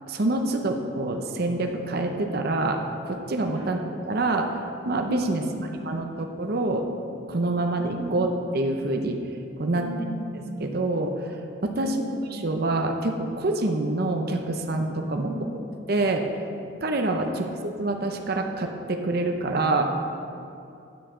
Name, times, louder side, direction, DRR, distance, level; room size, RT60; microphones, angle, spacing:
voice 1, 0.1-2.8 3.0-4.5 4.9-5.4 5.9-6.9 7.3-9.2 9.6-9.8 10.6-11.3 11.6-11.9 12.4-15.3 15.9-16.3 16.8-17.5 17.8-19.9, right 2 dB, 50° right, 3 dB, 0.7 m, -26 dB
voice 2, 5.2-6.1 8.0-8.2 9.7-10.2 11.7-12.1 15.1-15.5 17.2-17.5, right 1 dB, 85° right, -3 dB, 1.9 m, -37 dB
10.5 x 8.9 x 3.7 m, 2.6 s
head